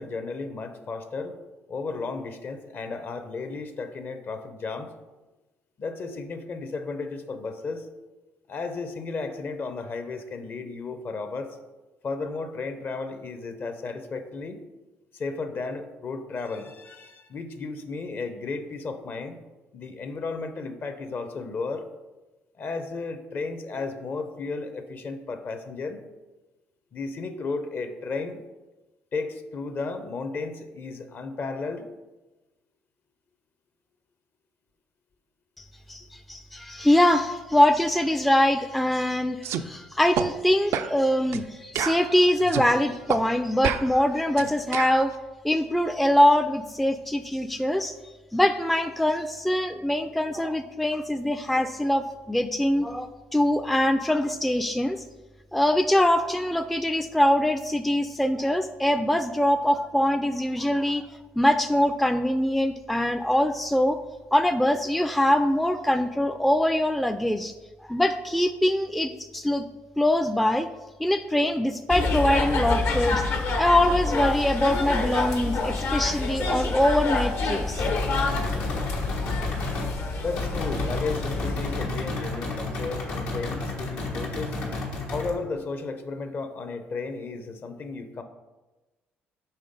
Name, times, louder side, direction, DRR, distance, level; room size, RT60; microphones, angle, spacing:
voice 1, 0.0-1.4 1.7-4.9 5.8-7.9 8.5-11.6 12.0-14.6 15.1-19.4 19.7-21.9 22.6-26.1 26.9-28.4 29.1-31.9 80.2-84.5 85.1-88.2, left 4 dB, 45° left, 9 dB, 0.7 m, -34 dB
voice 2, 35.6-45.1 45.4-47.9 48.3-55.0 55.5-61.0 61.4-64.0 64.3-67.5 67.9-69.7 70.0-70.7 71.0-73.2 73.5-77.8, left 1 dB, ahead, 8 dB, 0.3 m, -23 dB
sound 1, 39.4-39.6 40.2-40.3 40.7-40.9 41.3-41.5 41.8-42.7 43.1-43.2 43.6-45.0, right 9 dB, 75° right, 0.3 m, -29 dB
sound 2, 71.9-81.8, left 3 dB, 65° left, 1.0 m, -27 dB
sound 3, 77.8-79.9 80.4-85.3, left 2 dB, 85° left, 1.4 m, -32 dB
5.6 x 3.5 x 5.2 m, 1.2 s
supercardioid pair, 70°, 5 cm